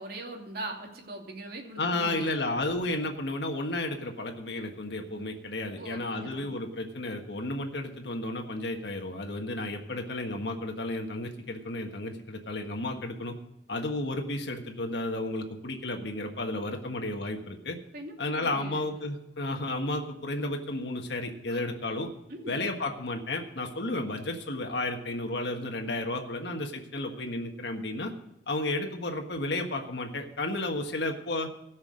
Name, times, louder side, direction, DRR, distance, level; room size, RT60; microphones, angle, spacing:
voice 1, 0.0-2.3 5.8-6.6 17.9-19.0 21.5-21.6 22.3-22.6, right 1 dB, 60° right, 1 dB, 2.7 m, -41 dB
voice 2, 1.8-13.4 13.7-17.8 18.2-22.1 22.5-28.1 28.5-31.5, left 2 dB, 75° left, 3 dB, 1.5 m, -32 dB
16.5 x 6.4 x 6.4 m, 0.86 s
head